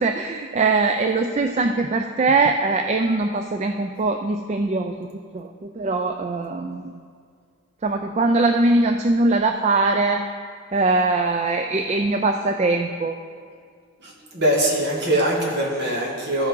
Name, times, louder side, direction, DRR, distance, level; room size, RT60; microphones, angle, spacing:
voice 1, 0.0-6.9 7.8-10.2 10.7-13.1, right 3 dB, 30° right, 5 dB, 0.3 m, -21 dB
voice 2, 14.0-16.5, right 1 dB, 55° right, -3 dB, 1.9 m, -22 dB
13.5 x 5.9 x 4.6 m, 2.2 s
head